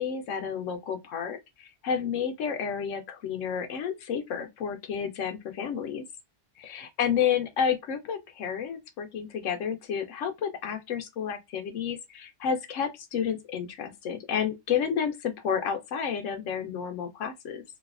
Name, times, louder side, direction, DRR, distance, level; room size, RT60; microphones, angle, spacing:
voice 1, 0.0-6.0 6.6-17.6, left 7 dB, 85° left, 1.0 m, -31 dB
3.2 x 2.2 x 2.3 m
omnidirectional pair, 1.2 m